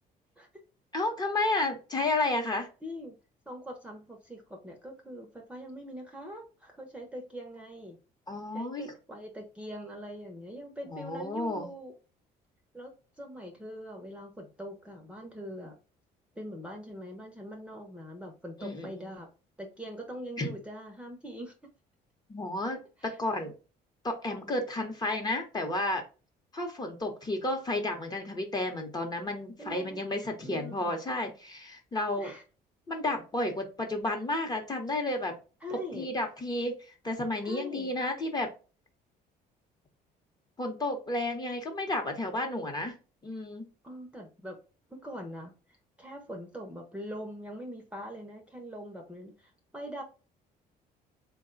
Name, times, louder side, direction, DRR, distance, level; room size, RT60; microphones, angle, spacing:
voice 1, 0.9-2.7 8.3-8.9 10.8-11.7 18.6-18.9 20.4-20.5 22.3-23.5 24.0-26.0 26.5-32.3 32.9-35.4 35.9-36.8 37.0-38.5 40.6-42.9 43.2-43.7, left 2 dB, 25° left, 3 dB, 0.9 m, -32 dB
voice 2, 2.8-3.2 3.5-8.0 8.5-11.9 12.7-15.8 16.3-19.3 19.6-21.5 23.0-23.2 29.6-30.0 30.4-31.0 32.1-32.4 35.6-36.1 37.4-37.9 43.8-44.6 44.9-45.5 46.0-50.0, equal, 5° right, 2 dB, 0.8 m, -42 dB
3.6 x 2.2 x 3.8 m, 0.33 s
cardioid pair, 110°, 17 cm